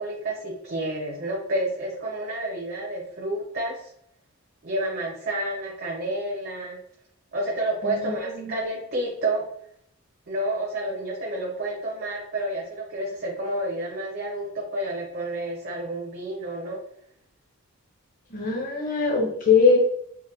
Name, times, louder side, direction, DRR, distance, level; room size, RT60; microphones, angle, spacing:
voice 1, 0.0-3.9 4.6-6.8 7.3-9.5 10.3-16.8, right 1 dB, 45° right, -2 dB, 0.5 m, -30 dB
voice 2, 7.8-8.5 18.3-19.8, left 4 dB, 40° left, 0 dB, 0.7 m, -22 dB
3.7 x 2.1 x 2.5 m, 0.71 s
head